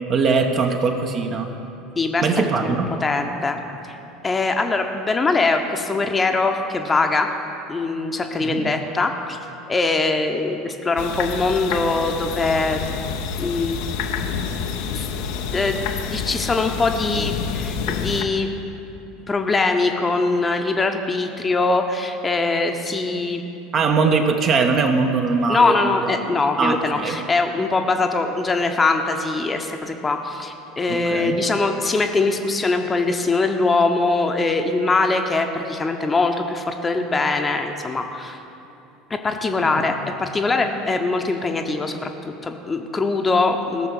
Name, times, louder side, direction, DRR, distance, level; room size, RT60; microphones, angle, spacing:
voice 1, 0.1-1.5 2.2-2.9 8.4-8.7 23.7-25.9 26.6-27.2 30.9-31.4, right 4 dB, 40° right, 4 dB, 1.0 m, -21 dB
voice 2, 2.0-2.3 2.6-2.7 3.0-3.6 3.8-4.0 4.2-7.3 7.7-9.4 9.7-12.8 13.4-13.8 14.9-15.1 15.5-18.5 19.3-23.5 25.5-38.4 39.1-43.9, left 3 dB, 20° left, 5 dB, 0.9 m, -22 dB
sound 1, 11.0-18.2, left 6 dB, 55° left, 0.7 m, -28 dB
16.5 x 6.7 x 6.4 m, 2.8 s
figure-of-eight pair, 70°, 0 cm